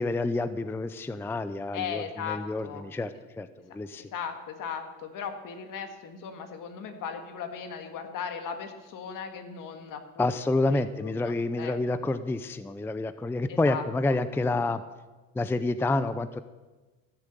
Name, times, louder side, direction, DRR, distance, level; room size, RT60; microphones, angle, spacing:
voice 1, 0.0-4.1 10.2-14.8 15.3-16.4, left 2 dB, 5° left, 13 dB, 0.4 m, -28 dB
voice 2, 1.7-2.8 4.0-10.3 10.7-12.0 13.5-14.2, left 7 dB, 60° left, 6 dB, 1.9 m, -38 dB
15.5 x 7.2 x 6.8 m, 1.2 s
cardioid pair, 95°, 35 cm